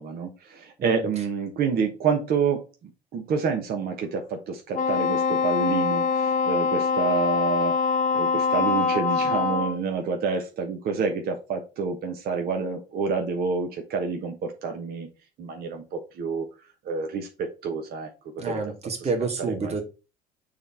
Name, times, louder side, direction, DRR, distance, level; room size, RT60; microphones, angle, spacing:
voice 1, 0.0-15.1 15.4-16.5 16.8-18.6 19.0-19.1 19.4-19.7, right 5 dB, 50° right, 4 dB, 1.1 m, -28 dB
Wind instrument woodwind instrument, 4.7-9.8, left 5 dB, 40° left, 1.2 m, -24 dB
voice 2, 18.4-19.8, right 4 dB, 30° right, 3 dB, 1.9 m, -29 dB
7.0 x 3.4 x 4.3 m, 0.31 s
hypercardioid pair, 65°, 21 cm